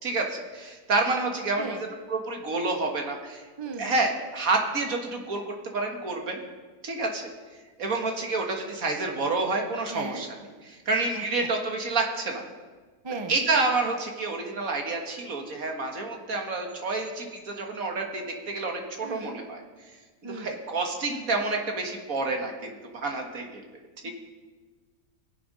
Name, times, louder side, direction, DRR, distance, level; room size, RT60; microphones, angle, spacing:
voice 1, 0.0-1.6 2.1-3.4 3.8-6.4 6.8-7.3 7.8-10.3 10.7-12.4 13.3-19.6 20.3-23.6 24.0-24.1, right 3 dB, 65° right, 2 dB, 2.0 m, -29 dB
voice 2, 1.6-1.9 3.6-3.9 9.9-10.2 11.1-11.2 13.0-13.4 19.0-19.4 20.2-20.5 24.0-24.1, right 3 dB, 25° right, 5 dB, 0.7 m, -37 dB
21.0 x 7.7 x 5.4 m, 1.4 s
omnidirectional pair, 1.6 m